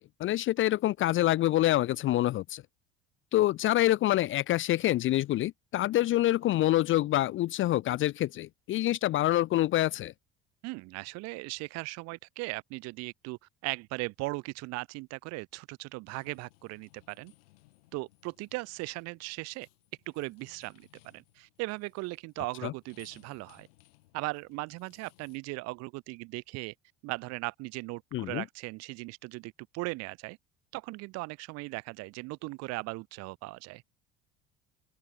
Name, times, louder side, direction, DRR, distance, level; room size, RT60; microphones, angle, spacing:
voice 1, 0.2-2.6 3.3-10.1 22.6-22.7 28.1-28.4, left 14 dB, 45° left, 0.5 m, -26 dB
voice 2, 10.6-17.3 17.9-19.7 20.1-23.7 24.1-26.7 27.0-30.4 30.7-33.8, right 23 dB, 60° right, 0.8 m, -38 dB
sound 1, 16.1-25.4, left 20 dB, 75° left, 5.0 m, -63 dB
open air
hypercardioid pair, 65°, 30 cm